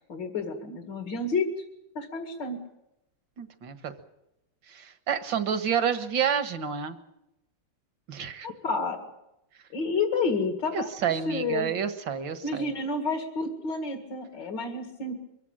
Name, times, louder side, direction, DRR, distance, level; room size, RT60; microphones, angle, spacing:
voice 1, 0.1-1.6 1.9-2.6 8.4-9.1 9.7-11.7 12.4-15.2, left 3 dB, 65° left, 5 dB, 2.8 m, -30 dB
voice 2, 3.4-3.9 4.7-7.0 8.1-8.5 10.7-12.7, right 7 dB, 75° right, 10 dB, 2.2 m, -29 dB
23.5 x 15.5 x 8.9 m, 0.89 s
omnidirectional pair, 2.1 m